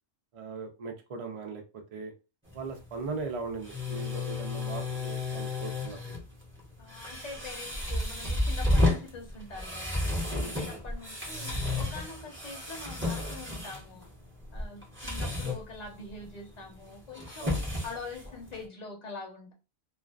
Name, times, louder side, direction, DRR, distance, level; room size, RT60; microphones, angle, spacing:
voice 1, 0.3-2.1 2.5-6.2 10.3-10.5 17.4-17.6, right 4 dB, 65° right, 0.3 m, -39 dB
sound 1, 2.4-18.6, left 2 dB, 15° right, 0.5 m, -33 dB
voice 2, 6.8-14.1 14.5-19.5, left 3 dB, 40° left, 0.7 m, -44 dB
2.4 x 2.3 x 2.3 m
omnidirectional pair, 1.2 m